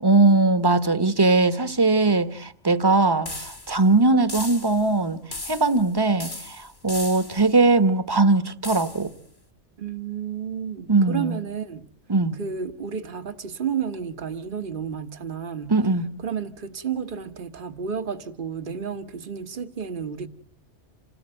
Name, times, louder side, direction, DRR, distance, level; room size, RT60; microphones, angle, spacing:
voice 1, 0.0-5.2 5.4-9.1 10.9-11.4 12.1-12.4 15.7-16.0, right 3 dB, 20° right, 1.3 m, -20 dB
sound 1, 3.2-3.8 4.3-4.9 5.3-5.9 6.2-7.5 8.6-9.1, left 2 dB, 20° left, 1.3 m, -36 dB
voice 2, 9.8-11.9 12.3-15.8 16.2-20.3, right 7 dB, 50° right, 1.5 m, -31 dB
28.5 x 18.0 x 9.0 m
omnidirectional pair, 1.2 m